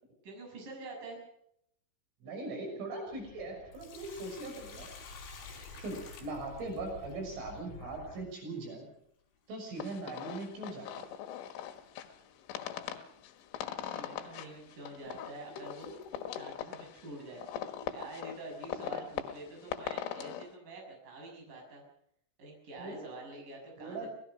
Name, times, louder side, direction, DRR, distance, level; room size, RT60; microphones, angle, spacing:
voice 1, 0.2-1.2 13.8-15.9 16.4-17.5 17.9-21.8 22.4-24.1, right 2 dB, 45° right, 1 dB, 7.7 m, -47 dB
voice 2, 2.2-4.9 5.8-8.9 9.5-11.1 22.8-23.1 23.8-24.1, right 2 dB, 85° right, 2 dB, 9.1 m, -40 dB
sound 1, 3.1-8.2, left 3 dB, 40° left, 3.5 m, -51 dB
Sink (filling or washing), 3.5-7.1 9.5-9.6 11.5-11.7 12.2-12.3 13.1-13.2 13.9-14.0 14.7-16.6, left 5 dB, 75° left, 7.0 m, -51 dB
sound 2, 9.8-20.5, left 10 dB, 90° left, 4.0 m, -41 dB
26.5 x 18.5 x 5.5 m, 0.72 s
omnidirectional pair, 5.6 m